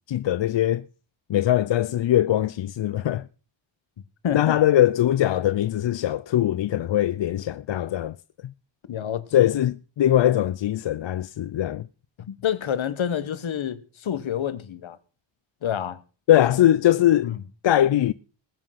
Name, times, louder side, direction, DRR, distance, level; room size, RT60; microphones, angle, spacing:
voice 1, 0.1-0.8 1.3-3.2 4.3-8.1 9.3-11.9 16.3-17.3 17.6-18.1, left 12 dB, 70° left, 0.6 m, -21 dB
voice 2, 4.2-4.5 8.9-9.5 12.3-15.0 15.6-16.0 16.4-16.5 17.2-17.4, left 9 dB, 85° left, 1.3 m, -28 dB
20.5 x 7.7 x 5.8 m
wide cardioid pair, 180°, 46 cm